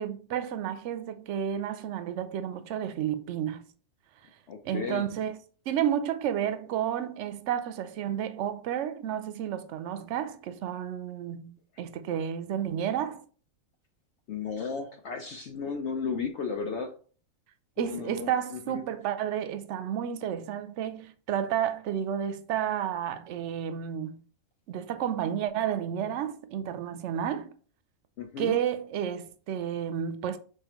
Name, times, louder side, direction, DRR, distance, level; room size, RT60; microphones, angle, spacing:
voice 1, 0.0-3.6 4.6-5.4 5.7-13.2 17.8-24.2 24.7-27.5 28.4-30.4, right 9 dB, 70° right, 0.8 m, -31 dB
voice 2, 4.5-5.1 14.3-16.9 17.8-18.8 28.2-28.6, left 5 dB, 65° left, 0.8 m, -34 dB
4.8 x 3.7 x 2.9 m
omnidirectional pair, 1.4 m